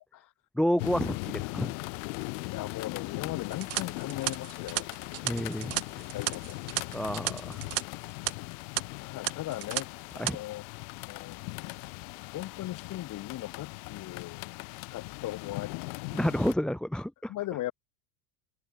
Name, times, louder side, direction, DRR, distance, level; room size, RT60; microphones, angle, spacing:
voice 1, 0.6-1.7 5.2-5.8 6.9-7.6 10.2-10.4 16.1-17.3, equal, ahead, 0.6 m, -29 dB
sound 1, 0.8-16.5, left 36 dB, 65° left, 4.0 m, -39 dB
voice 2, 2.5-4.9 5.2-5.4 6.1-6.7 9.0-10.6 11.1-12.1 12.3-14.5 14.9-15.9 17.3-17.7, left 15 dB, 40° left, 5.6 m, -39 dB
sound 2, 3.5-7.8 8.1-8.3 8.8-8.9 9.3-9.8 10.1-10.3, right 17 dB, 30° right, 0.8 m, -33 dB
cardioid pair, 165°, 49 cm